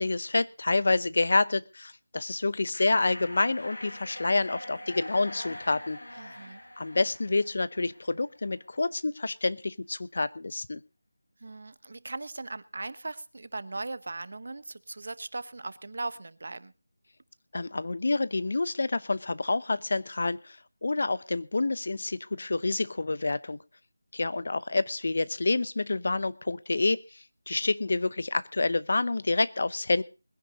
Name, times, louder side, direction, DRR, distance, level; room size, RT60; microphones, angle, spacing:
voice 1, 0.0-6.0 6.8-10.8 17.5-20.6 20.8-23.6 24.1-27.0 27.5-30.0, left 3 dB, 50° left, 17 dB, 0.7 m, -28 dB
sound 1, 2.7-8.3, left 1 dB, 75° left, 6.4 m, -43 dB
voice 2, 6.2-6.6 11.4-16.7, right 2 dB, 55° right, 16 dB, 0.9 m, -38 dB
21.5 x 10.5 x 4.0 m, 0.32 s
figure-of-eight pair, 175°, 0 cm